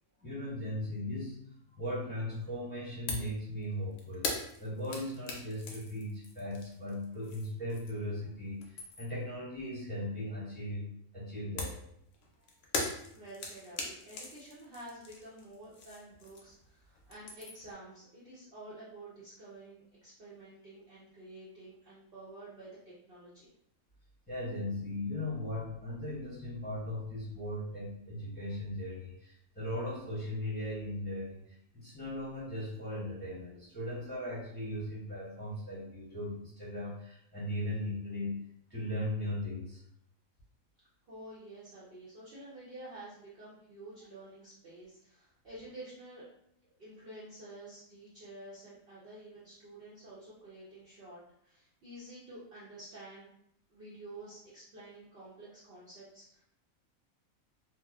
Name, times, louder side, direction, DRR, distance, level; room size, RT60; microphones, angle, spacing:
voice 1, 0.2-1.4 1.8-4.3 4.6-10.9 11.1-11.8 24.3-38.4 38.7-39.8, left 1 dB, 10° left, -10 dB, 1.1 m, -38 dB
sound 1, 3.1-3.4 3.6-8.1 8.5-9.2 11.6-16.7 17.0-17.7, left 3 dB, 70° left, 0.8 m, -40 dB
voice 2, 13.1-23.5 41.1-46.2 46.8-53.3 53.7-56.4, right 1 dB, 55° right, -8 dB, 0.7 m, -50 dB
2.8 x 2.1 x 2.3 m, 0.73 s
omnidirectional pair, 1.4 m